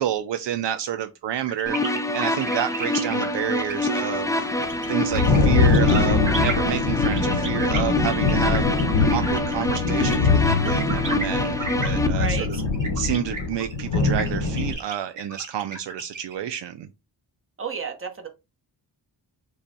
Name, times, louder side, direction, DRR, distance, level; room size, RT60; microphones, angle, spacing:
voice 1, 0.0-1.8 2.1-4.3 4.9-8.7 9.1-12.6 12.9-16.9, right 10 dB, 65° right, 0.5 m, -29 dB
sound 1, 1.5-16.3, right 3 dB, 45° right, 1.5 m, -34 dB
sound 2, 1.7-12.1, left 1 dB, 10° left, 0.4 m, -26 dB
Thunder, 4.6-14.7, left 4 dB, 85° left, 1.1 m, -23 dB
voice 2, 12.1-12.6 17.6-18.3, right 5 dB, 30° right, 1.0 m, -31 dB
5.5 x 2.2 x 4.1 m
wide cardioid pair, 140°, 45 cm